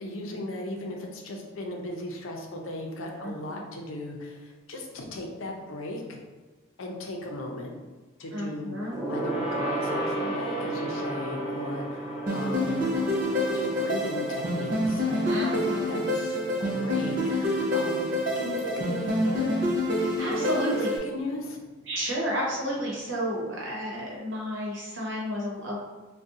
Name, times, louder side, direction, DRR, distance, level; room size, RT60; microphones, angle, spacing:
voice 1, 0.0-6.2 6.8-7.8 8.2-12.8 13.5-18.1 18.4-19.5 20.4-20.7 21.0-21.6, left 1 dB, 75° left, 1 dB, 0.5 m, -36 dB
voice 2, 3.2-3.6 8.3-9.0 15.2-16.0 20.0-20.9 21.9-25.8, equal, 65° right, -4 dB, 1.0 m, -31 dB
Gong, 8.9-18.7 19.0-19.2 19.5-19.6, right 1 dB, 5° right, 0.9 m, -34 dB
sound 1, 12.3-21.0, left 1 dB, 40° right, 0.6 m, -27 dB
2.6 x 2.2 x 3.7 m, 1.3 s
head